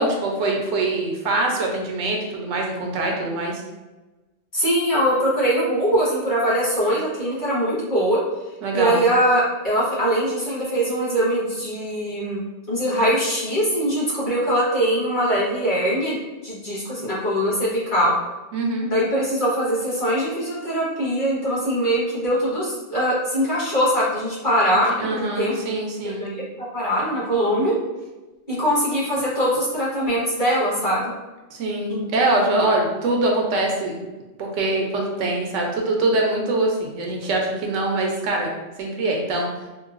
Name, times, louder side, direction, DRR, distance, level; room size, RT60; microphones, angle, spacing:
voice 1, 0.0-3.6 8.6-9.0 18.5-18.9 25.0-26.3 31.5-34.0 34.4-39.5, right 2 dB, 80° right, 1 dB, 1.0 m, -23 dB
voice 2, 4.5-8.2 8.7-12.4 12.7-16.2 16.4-18.1 18.9-25.5 26.2-26.4 26.7-27.7 28.5-31.1 31.9-32.0, equal, 40° left, -9 dB, 1.5 m, -22 dB
3.7 x 2.2 x 2.4 m, 1.1 s
omnidirectional pair, 1.3 m